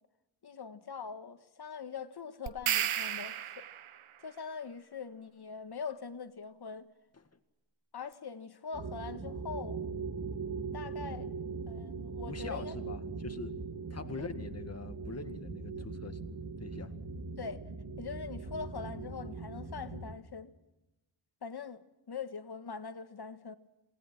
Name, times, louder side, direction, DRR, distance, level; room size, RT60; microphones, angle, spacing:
voice 1, 0.4-3.7 4.2-6.9 7.9-9.8 10.7-11.3 11.7-12.8 14.1-14.3 15.7-15.9 17.4-17.6 18.0-20.5 21.4-23.5, left 5 dB, 50° left, 1.7 m, -43 dB
sound 1, 2.5-4.0, right 10 dB, 80° right, 1.0 m, -33 dB
sound 2, 8.7-20.1, right 4 dB, 45° right, 2.9 m, -40 dB
voice 2, 12.3-13.6 13.9-16.2 16.6-17.0, left 4 dB, 30° left, 2.0 m, -43 dB
28.5 x 19.5 x 6.0 m
wide cardioid pair, 130°, 49 cm